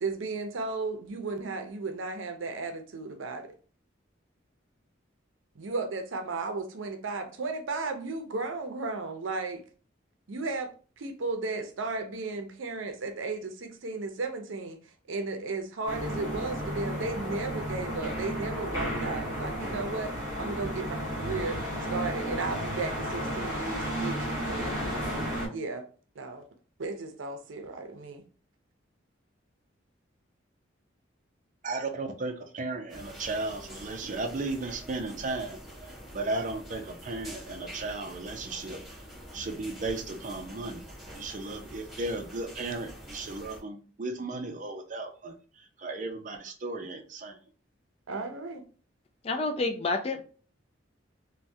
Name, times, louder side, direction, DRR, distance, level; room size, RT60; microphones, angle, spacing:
voice 1, 0.0-3.5 5.6-9.6 10.3-10.7 11.0-14.8 15.1-21.6 21.9-24.8 25.5-25.8 26.2-26.4 26.8-28.2 48.1-48.6, right 3 dB, 90° right, 0.6 m, -34 dB
sound 1, 15.9-25.5, equal, 20° right, 1.5 m, -33 dB
voice 2, 31.6-35.6 36.1-38.8 39.3-40.8 41.2-45.3 45.8-47.4, right 2 dB, 40° right, 0.5 m, -35 dB
sound 2, 32.9-43.6, equal, ahead, 1.1 m, -46 dB
voice 3, 49.2-50.2, left 3 dB, 30° left, 0.3 m, -29 dB
3.3 x 2.2 x 2.6 m
head